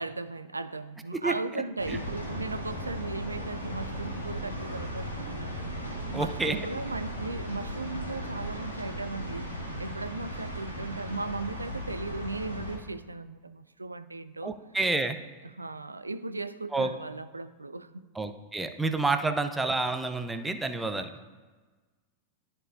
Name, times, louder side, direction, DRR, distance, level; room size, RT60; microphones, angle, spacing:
voice 1, 0.0-5.8 6.1-14.5 15.4-18.0, right 3 dB, 80° right, 12 dB, 0.3 m, -37 dB
sound 1, 1.8-12.8, equal, 85° left, 1.4 m, -37 dB
voice 2, 6.1-6.6 14.4-15.2 16.7-16.9 18.2-21.1, right 3 dB, 10° right, 8 dB, 0.5 m, -29 dB
12.5 x 4.4 x 2.5 m, 1.3 s
figure-of-eight pair, 90°, 0 cm